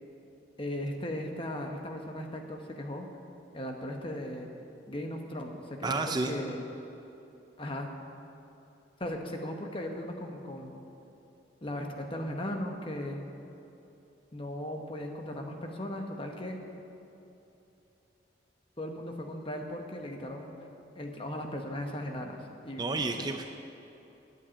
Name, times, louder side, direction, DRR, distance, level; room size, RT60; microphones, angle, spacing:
voice 1, 0.6-3.1 3.5-4.5 4.9-6.6 7.6-7.9 9.0-10.8 11.6-13.2 14.3-16.6 18.8-20.7 20.9-23.3, left 1 dB, 30° left, 3 dB, 1.1 m, -37 dB
voice 2, 5.8-6.3 22.8-23.5, right 3 dB, 25° right, 5 dB, 0.4 m, -31 dB
9.7 x 8.3 x 8.6 m, 2.9 s
head